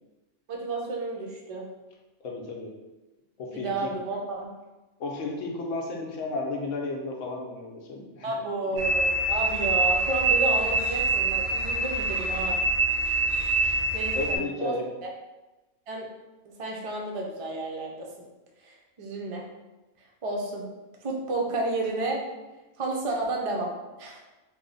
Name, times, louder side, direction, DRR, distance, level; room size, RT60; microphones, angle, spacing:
voice 1, 0.5-1.6 3.5-4.5 8.2-12.6 13.9-14.7 15.0-15.1 15.9-16.1 16.6-18.1 18.6-19.4 20.2-20.6 21.0-22.2 22.8-23.7 24.0-24.2, right 2 dB, 55° right, -1 dB, 0.3 m, -31 dB
voice 2, 2.2-2.7 3.4-3.9 5.0-8.4 13.4-13.9 14.1-14.8, left 3 dB, 80° left, 0 dB, 1.0 m, -33 dB
sound 1, 8.8-14.4, right 2 dB, 90° right, 1.0 m, -25 dB
3.0 x 2.0 x 3.8 m, 1.1 s
omnidirectional pair, 1.3 m